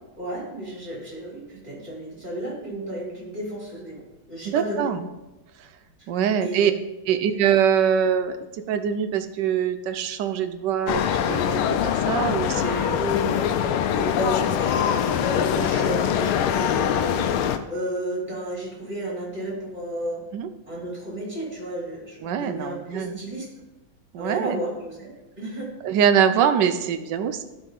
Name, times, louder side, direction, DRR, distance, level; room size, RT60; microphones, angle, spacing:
voice 1, 0.2-4.9 6.0-6.1 6.4-6.6 12.9-13.5 13.9-20.2 20.7-23.5 24.2-25.7, equal, 20° right, -5 dB, 3.0 m, -33 dB
voice 2, 4.5-5.0 6.1-6.7 7.1-8.4 8.7-11.7 12.1-13.0 20.3-20.5 22.2-23.2 24.1-24.6 25.8-27.4, right 8 dB, 70° right, 10 dB, 1.1 m, -23 dB
sound 1, 10.9-17.6, left 9 dB, 85° left, 1.4 m, -23 dB
12.0 x 4.7 x 3.9 m, 1.0 s
omnidirectional pair, 2.3 m